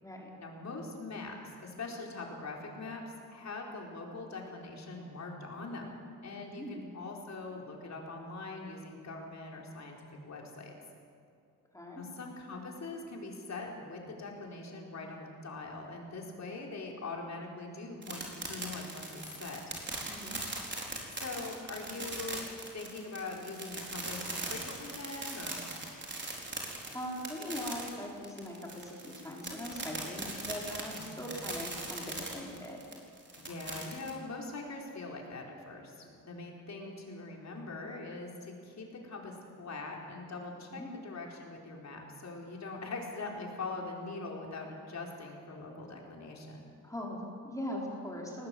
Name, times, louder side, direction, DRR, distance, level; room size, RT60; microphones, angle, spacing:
voice 1, 0.4-5.9 6.2-10.7 12.0-19.6 21.2-22.4 22.7-25.6 30.9-31.2 33.4-46.7, left 3 dB, 50° left, 0 dB, 4.5 m, -42 dB
voice 2, 6.3-6.9 11.7-12.0 20.1-20.4 26.9-32.8 40.6-40.9 46.8-48.5, left 1 dB, 10° left, -2 dB, 4.8 m, -41 dB
sound 1, 18.0-34.1, right 2 dB, 30° right, 4.5 m, -40 dB
20.0 x 18.5 x 7.9 m, 2.4 s
cardioid pair, 90°, 34 cm